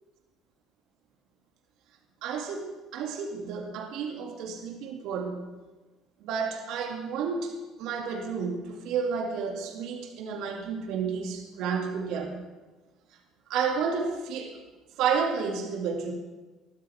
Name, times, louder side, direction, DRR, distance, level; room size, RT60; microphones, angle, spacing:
voice 1, 2.2-2.7 2.9-5.4 6.2-7.5 7.8-12.4 13.5-14.6 15.0-16.1, right 6 dB, 65° right, 2 dB, 2.1 m, -31 dB
20.0 x 12.5 x 3.5 m, 1.2 s
hypercardioid pair, 60°, 0 cm